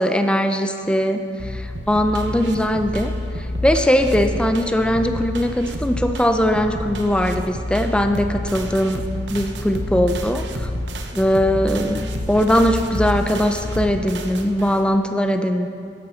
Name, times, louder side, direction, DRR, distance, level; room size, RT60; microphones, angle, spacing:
voice 1, 0.0-3.1 3.4-9.0 9.3-10.7 11.1-15.7, equal, 5° left, 7 dB, 0.5 m, -20 dB
sound 1, 1.4-14.1, left 2 dB, 45° left, 0.7 m, -30 dB
sound 2, 1.8-15.0, right 2 dB, 70° right, 0.8 m, -34 dB
12.5 x 10.5 x 4.4 m, 2.5 s
head